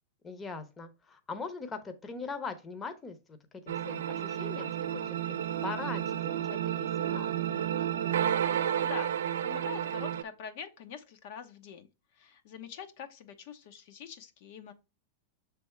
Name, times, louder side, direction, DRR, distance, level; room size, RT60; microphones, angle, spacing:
voice 1, 0.2-3.4 3.7-5.3 5.6-7.4, left 4 dB, 20° left, 0.9 m, -41 dB
sound 1, 3.7-10.2, right 10 dB, 80° right, 0.6 m, -31 dB
voice 2, 8.5-9.2 9.4-11.9 12.1-14.7, left 8 dB, 60° left, 1.0 m, -44 dB
6.2 x 3.5 x 4.5 m
hypercardioid pair, 125°, 0 cm